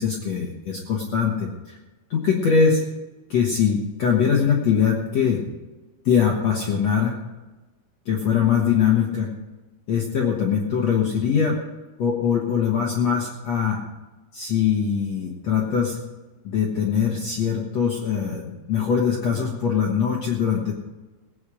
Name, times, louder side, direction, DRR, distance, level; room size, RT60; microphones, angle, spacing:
voice 1, 0.0-1.8 2.1-2.8 3.3-5.4 6.1-7.1 8.1-9.3 9.9-11.6 12.0-13.8 14.3-16.0 16.4-20.7, left 7 dB, 60° left, -1 dB, 1.9 m, -22 dB
18.5 x 9.3 x 5.0 m, 1.2 s
omnidirectional pair, 4.8 m